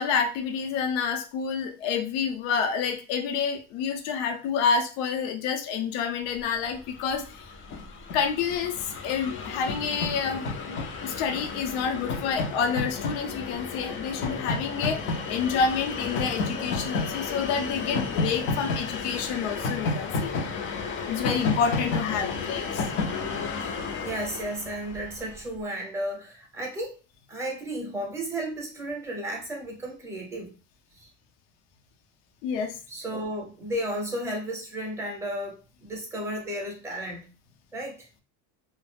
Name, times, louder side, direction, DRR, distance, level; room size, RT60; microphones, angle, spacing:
voice 1, 0.0-7.5 8.1-20.3 21.0-22.8 32.4-32.8, left 6 dB, 75° left, 3 dB, 0.7 m, -28 dB
Train, 6.7-6.8 7.0-25.4, left 3 dB, 35° left, 0.4 m, -32 dB
voice 2, 23.6-27.0 27.3-30.5 30.9-31.1 32.9-37.2 37.7-38.0, right 1 dB, 10° right, 0 dB, 0.7 m, -33 dB
2.3 x 2.0 x 3.3 m, 0.33 s
cardioid pair, 155°, 36 cm